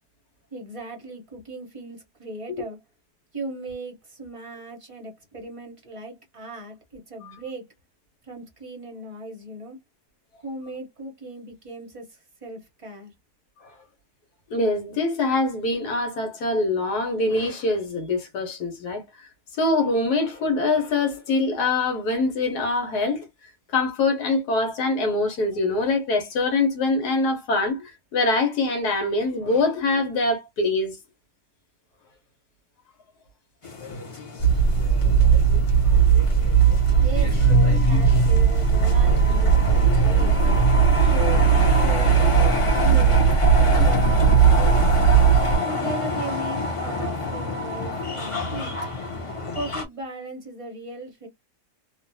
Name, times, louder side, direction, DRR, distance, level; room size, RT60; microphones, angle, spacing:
voice 1, 0.5-2.8 3.3-7.7 8.2-9.8 10.4-13.1 37.0-40.4 41.0-44.9 45.6-48.8 49.5-51.3, right 2 dB, 35° right, 0.5 m, -37 dB
voice 2, 14.5-19.3 19.5-23.3 23.7-31.0 35.9-36.1 41.0-41.1, left 2 dB, 70° left, 1.4 m, -24 dB
sound 1, 33.6-49.8, left 3 dB, 45° left, 0.4 m, -29 dB
sound 2, 34.4-45.6, right 6 dB, 30° left, 1.5 m, -18 dB
3.0 x 2.1 x 2.6 m
omnidirectional pair, 1.8 m